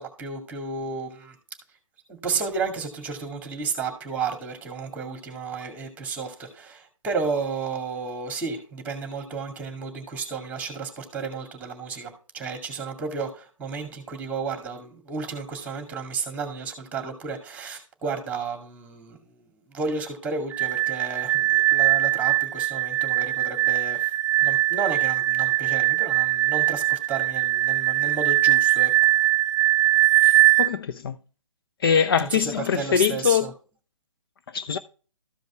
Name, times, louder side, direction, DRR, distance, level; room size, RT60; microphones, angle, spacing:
voice 1, 0.0-1.4 2.1-19.2 19.7-24.1 24.4-28.9 32.2-33.5, right 5 dB, 10° right, 2.2 m, -32 dB
sound 1, 20.5-30.7, right 15 dB, 60° right, 0.7 m, -21 dB
voice 2, 30.6-31.1 31.8-33.5 34.5-34.8, left 7 dB, 45° left, 0.6 m, -23 dB
13.5 x 5.2 x 3.4 m
figure-of-eight pair, 130°, 17 cm